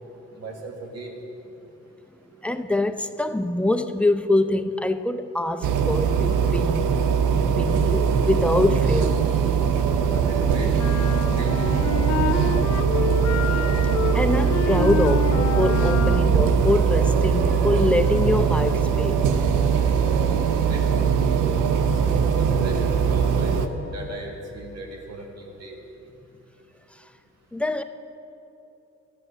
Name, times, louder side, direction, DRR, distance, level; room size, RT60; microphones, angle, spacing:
voice 1, 0.4-1.1 10.1-11.0 11.3-11.7 20.7-20.9 21.9-23.6 23.9-25.8, right 1 dB, 60° right, 2.1 m, -37 dB
voice 2, 2.4-6.9 7.4-9.2 12.9-13.6 14.1-19.2 27.5-27.8, left 2 dB, 5° left, 0.6 m, -24 dB
sound 1, 5.6-23.7, right 6 dB, 85° right, 0.8 m, -21 dB
sound 2, 10.8-16.5, left 9 dB, 60° left, 0.7 m, -28 dB
sound 3, 16.1-24.2, equal, 40° right, 2.8 m, -39 dB
12.5 x 9.6 x 6.9 m
cardioid pair, 90°, 30 cm